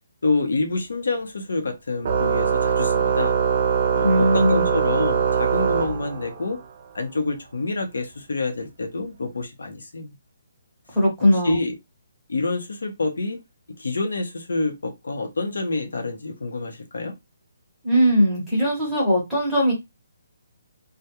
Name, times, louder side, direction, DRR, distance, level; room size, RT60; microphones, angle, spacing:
voice 1, 0.2-3.3 3.9-6.6 6.9-10.1 11.4-11.8 12.3-13.4 13.8-17.1, left 3 dB, 90° left, 0.7 m, -27 dB
Organ, 2.0-6.6, right 7 dB, 35° right, 0.3 m, -22 dB
voice 2, 4.0-4.7 10.9-11.5 17.8-19.7, equal, ahead, 0.9 m, -19 dB
2.2 x 2.2 x 2.8 m
hypercardioid pair, 175°, 0 cm